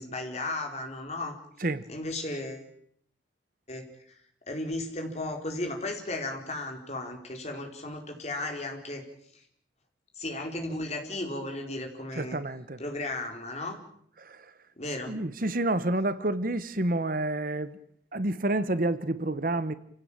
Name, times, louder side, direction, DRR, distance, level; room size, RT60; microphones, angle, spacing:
voice 1, 0.0-2.7 3.7-3.9 4.5-9.0 10.2-12.4 12.8-13.8 14.8-15.2, left 2 dB, 35° left, 4.6 m, -35 dB
voice 2, 12.1-12.8 14.2-14.5 15.1-17.8 18.1-19.7, right 2 dB, 45° right, 1.0 m, -29 dB
28.5 x 16.5 x 8.9 m
head